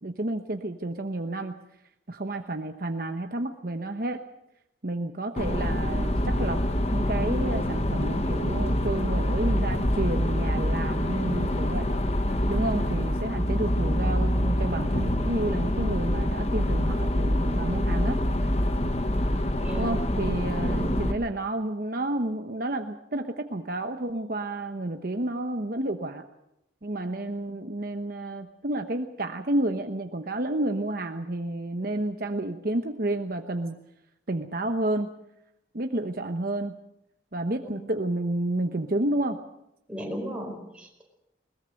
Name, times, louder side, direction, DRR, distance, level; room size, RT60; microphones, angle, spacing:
voice 1, 0.0-1.6 2.1-4.2 4.8-6.6 6.9-11.9 12.5-18.2 19.8-26.3 26.8-33.8 34.3-35.1 35.7-36.8 37.3-39.4, right 1 dB, 50° right, 6 dB, 1.0 m, -30 dB
sound 1, 5.4-21.1, left 1 dB, 35° left, 1.2 m, -26 dB
voice 2, 19.6-20.0 20.6-21.1 37.6-37.8 39.9-41.0, equal, 5° right, 0 dB, 4.9 m, -36 dB
21.5 x 21.0 x 6.5 m, 0.84 s
head